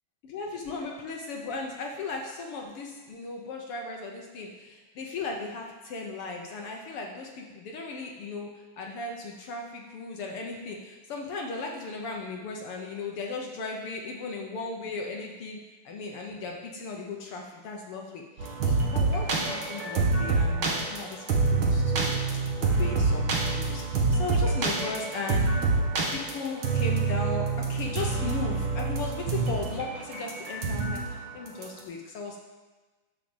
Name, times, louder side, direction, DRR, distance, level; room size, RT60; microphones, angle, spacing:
voice 1, 0.2-15.6 15.8-21.2 21.5-22.1 22.6-25.4 26.1-32.4, left 3 dB, 70° left, 1 dB, 1.4 m, -36 dB
sound 1, 18.4-31.0 31.5-31.8, right 3 dB, 45° right, 1.9 m, -26 dB
11.0 x 6.5 x 7.2 m, 1.3 s
omnidirectional pair, 3.8 m